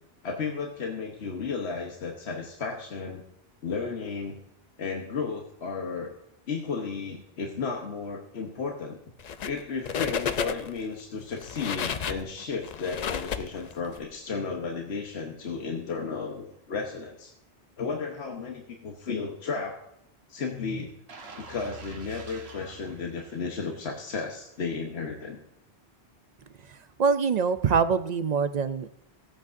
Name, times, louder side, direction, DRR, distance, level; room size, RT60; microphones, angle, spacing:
voice 1, 0.2-3.2 3.6-4.4 4.8-6.1 6.5-9.0 9.4-17.3 17.8-19.8 20.3-20.9 21.4-25.4, left 5 dB, 85° left, 1 dB, 1.3 m, -34 dB
sound 1, 9.2-9.6 9.8-10.8 11.3-14.0, left 7 dB, 50° left, 0.5 m, -31 dB
sound 2, 21.1-24.0 24.4-24.6, right 3 dB, 75° right, 1.3 m, -46 dB
voice 2, 26.7-28.9, right 6 dB, 55° right, 12 dB, 0.5 m, -25 dB
16.5 x 8.7 x 2.6 m, 0.77 s
omnidirectional pair, 1.1 m